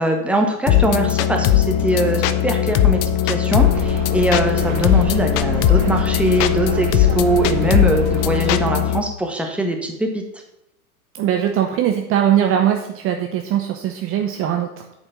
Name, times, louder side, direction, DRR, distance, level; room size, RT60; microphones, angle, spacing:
voice 1, 0.0-10.2, right 1 dB, 5° right, 2 dB, 1.5 m, -22 dB
sound 1, 0.7-9.0, left 11 dB, 35° left, 0.6 m, -19 dB
sound 2, 3.6-8.7, right 5 dB, 60° right, 1.8 m, -30 dB
voice 2, 11.1-14.7, right 10 dB, 30° right, 4 dB, 0.9 m, -20 dB
8.8 x 5.4 x 7.0 m, 0.82 s
hypercardioid pair, 125°, 43 cm